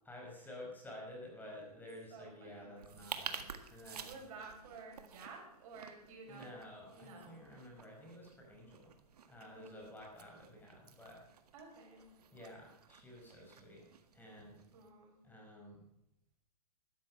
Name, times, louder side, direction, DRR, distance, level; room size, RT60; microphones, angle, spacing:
voice 1, 0.1-4.1 6.3-8.9 9.3-11.2 12.3-14.6 15.2-15.8, left 1 dB, 10° left, -1 dB, 5.2 m, -52 dB
voice 2, 2.1-2.7 4.0-6.6 6.9-7.4 9.6-9.9 11.5-12.1 14.7-15.2, right 3 dB, 60° right, 1 dB, 5.8 m, -53 dB
sound 1, 2.8-14.9, right 7 dB, 85° right, 1.8 m, -51 dB
13.5 x 13.0 x 5.6 m, 0.81 s
hypercardioid pair, 130°, 20 cm